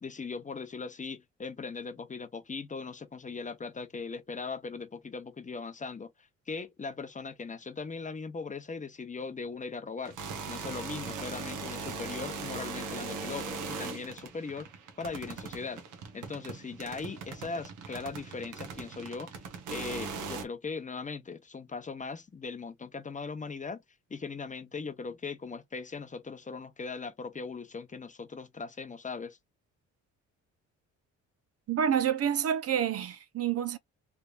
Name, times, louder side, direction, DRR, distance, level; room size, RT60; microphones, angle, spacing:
voice 1, 0.0-6.1 6.5-10.2 10.5-14.7 15.0-15.8 16.1-19.3 19.7-23.8 24.1-29.4, left 4 dB, 25° left, 0.8 m, -39 dB
sound 1, 10.1-20.4, right 4 dB, 80° right, 1.1 m, -40 dB
voice 2, 31.7-33.8, right 9 dB, 55° right, 0.5 m, -28 dB
3.4 x 3.3 x 2.3 m
cardioid pair, 90°, 30 cm